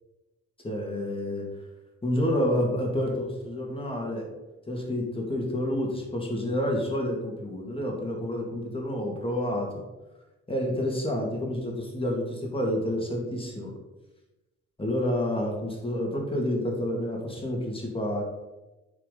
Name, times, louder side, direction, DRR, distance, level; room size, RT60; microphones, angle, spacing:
voice 1, 0.6-1.6 2.0-4.3 4.7-9.9 10.5-13.7 14.8-18.2, left 1 dB, 20° left, 0 dB, 2.2 m, -29 dB
8.7 x 4.7 x 4.0 m, 1.0 s
cardioid pair, 90°, 30 cm